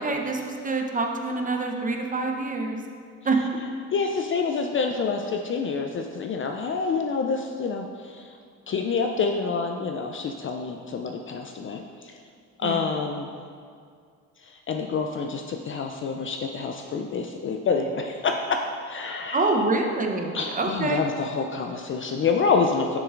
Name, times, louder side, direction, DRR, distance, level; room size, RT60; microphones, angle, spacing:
voice 1, 0.0-2.8 3.2-3.4 12.6-12.8 19.3-21.0, right 3 dB, 20° right, 2 dB, 0.8 m, -26 dB
voice 2, 3.9-8.4 8.7-12.2 12.6-13.3 14.4-19.5 20.3-23.0, left 4 dB, 35° left, 3 dB, 0.4 m, -27 dB
6.9 x 6.5 x 2.5 m, 2.2 s
supercardioid pair, 75°, 38 cm